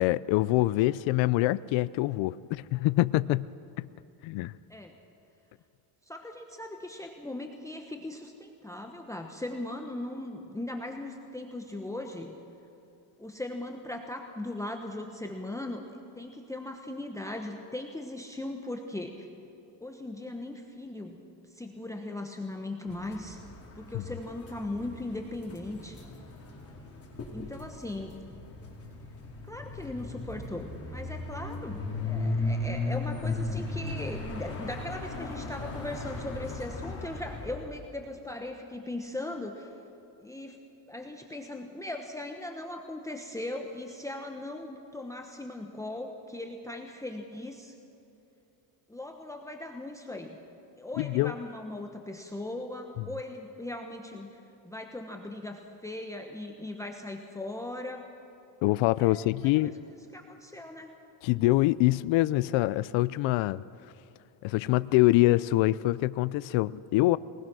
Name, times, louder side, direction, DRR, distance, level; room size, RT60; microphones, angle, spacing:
voice 1, 0.0-3.5 3.8-3.9 4.2-4.5 23.9-24.0 51.0-51.3 58.6-59.8 61.2-63.6 64.4-67.2, left 18 dB, 80° left, 17 dB, 0.6 m, -25 dB
voice 2, 6.1-12.3 13.2-19.3 19.8-21.2 21.5-23.4 23.7-26.0 27.3-28.2 29.4-39.7 40.2-40.6 40.9-47.7 48.9-50.4 50.8-54.4 54.6-58.0 59.0-59.7 60.1-60.9, left 1 dB, 5° left, 3 dB, 1.2 m, -39 dB
sound 1, 22.9-37.5, left 2 dB, 30° left, 4.4 m, -36 dB
22.5 x 19.5 x 6.2 m, 2.8 s
cardioid pair, 130°, 46 cm